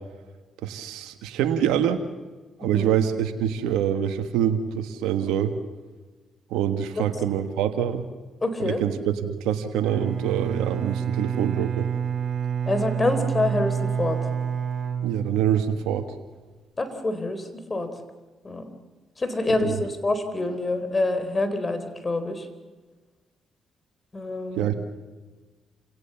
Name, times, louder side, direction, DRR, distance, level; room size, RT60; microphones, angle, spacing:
voice 1, 0.6-2.0 2.6-5.5 6.5-8.0 8.6-11.9 15.0-16.1 19.5-19.8 24.6-24.7, right 9 dB, 90° right, 7 dB, 1.3 m, -25 dB
voice 2, 2.6-2.9 7.0-7.1 8.4-8.8 12.7-14.2 16.8-17.9 18.4-18.7 19.2-22.5 24.1-24.7, left 2 dB, 30° left, 9 dB, 4.0 m, -26 dB
Bowed string instrument, 9.8-15.9, right 7 dB, 55° right, 4.1 m, -28 dB
28.5 x 17.5 x 7.1 m, 1.3 s
supercardioid pair, 60°, 0 cm